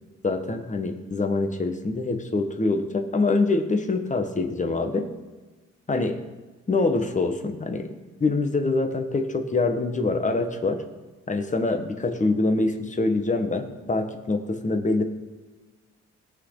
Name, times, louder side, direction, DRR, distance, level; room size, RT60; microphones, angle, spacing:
voice 1, 0.2-5.1 5.9-6.2 6.7-7.9 8.2-10.8 11.3-15.0, left 3 dB, 25° left, 6 dB, 1.5 m, -25 dB
18.0 x 6.4 x 4.0 m, 1.3 s
cardioid pair, 90°, 30 cm